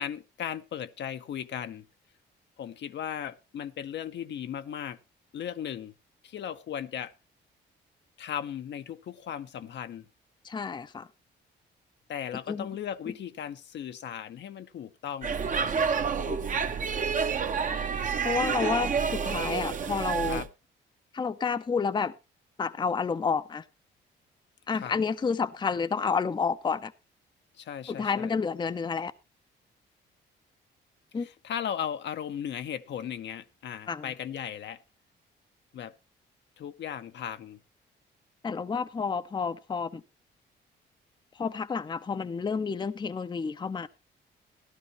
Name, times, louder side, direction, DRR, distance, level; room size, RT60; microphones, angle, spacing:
voice 1, 0.0-1.9 2.6-5.0 5.3-5.9 6.2-7.1 8.2-10.1 12.1-15.4 18.6-18.8 20.2-20.5 24.7-25.0 27.6-28.3 31.2-34.8 35.7-35.9 36.6-37.6, left 9 dB, 65° left, 0.8 m, -36 dB
voice 2, 10.4-11.1 12.5-12.7 16.2-16.4 18.2-20.4 21.1-22.1 22.6-23.6 24.7-26.9 27.9-29.1 31.1-31.3 33.9-34.1 38.4-40.0 41.4-43.9, left 5 dB, 25° left, 0.6 m, -30 dB
Speech / Shout / Subway metro underground, 15.2-20.5, right 6 dB, 40° right, 0.9 m, -29 dB
14.0 x 12.0 x 3.0 m
cardioid pair, 90°, 20 cm